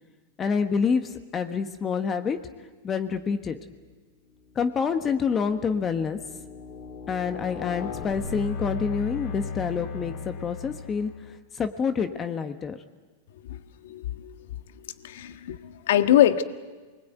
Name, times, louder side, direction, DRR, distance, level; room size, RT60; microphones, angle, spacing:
voice 1, 0.4-2.4 2.8-3.6 4.5-6.2 7.1-11.1 11.5-12.8, left 6 dB, 20° left, 8 dB, 1.4 m, -27 dB
sound 1, 3.6-3.9 4.5-11.4, left 5 dB, 50° left, 3.4 m, -37 dB
voice 2, 13.4-14.3 14.8-16.4, left 11 dB, 75° left, 10 dB, 1.7 m, -24 dB
28.5 x 21.5 x 9.4 m, 1.3 s
supercardioid pair, 145°, 0 cm